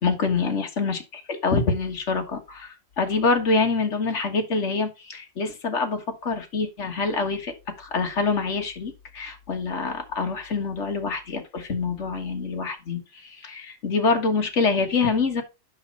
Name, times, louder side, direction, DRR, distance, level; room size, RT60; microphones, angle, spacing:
voice 1, 0.0-15.4, left 4 dB, 40° left, 4 dB, 1.7 m, -26 dB
8.7 x 5.8 x 4.2 m, 0.27 s
omnidirectional pair, 2.0 m